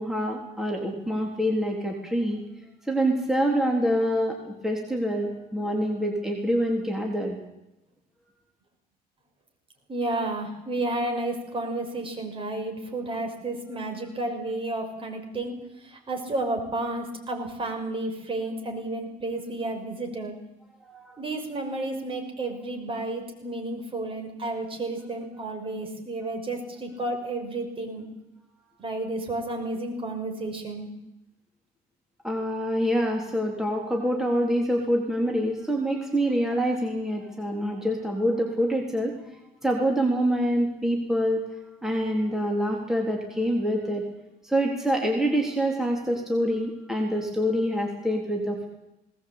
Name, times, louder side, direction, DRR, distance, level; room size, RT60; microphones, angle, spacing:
voice 1, 0.0-2.4 2.9-7.4 20.9-21.2 32.2-39.2 39.6-41.5 41.8-44.0 44.4-48.7, equal, 5° right, 0 dB, 3.8 m, -26 dB
voice 2, 9.9-20.3 21.2-28.1 28.8-30.9, right 2 dB, 30° right, 4 dB, 5.9 m, -31 dB
20.5 x 19.0 x 8.8 m, 0.92 s
cardioid pair, 110°, 17 cm